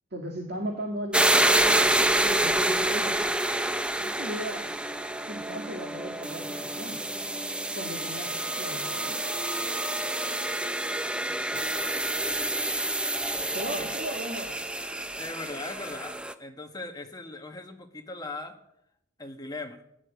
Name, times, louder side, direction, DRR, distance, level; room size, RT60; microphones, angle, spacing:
voice 1, 0.1-3.2 4.0-4.7 5.3-7.0 7.8-9.2 13.5-14.6, right 1 dB, 55° right, 1 dB, 2.2 m, -37 dB
sound 1, 1.1-16.3, right 1 dB, 5° right, 0.6 m, -28 dB
voice 2, 12.2-12.7 13.7-13.9 15.2-18.6 19.2-19.8, left 2 dB, 20° left, 4 dB, 1.6 m, -40 dB
15.5 x 11.0 x 8.3 m, 0.78 s
head